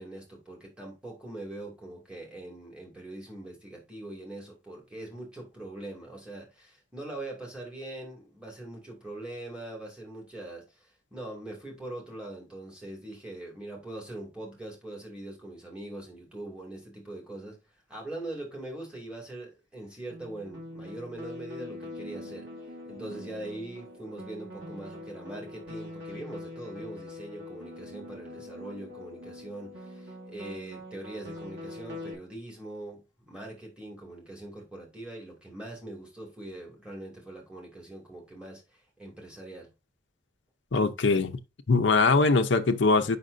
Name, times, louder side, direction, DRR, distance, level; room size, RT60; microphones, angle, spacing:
voice 1, 0.0-17.6 17.9-39.7, right 1 dB, 5° right, 2.2 m, -42 dB
sound 1, 20.1-32.1, left 1 dB, 85° right, 2.3 m, -43 dB
voice 2, 40.7-41.3 41.7-43.2, left 3 dB, 80° left, 0.7 m, -22 dB
7.5 x 5.8 x 2.6 m
head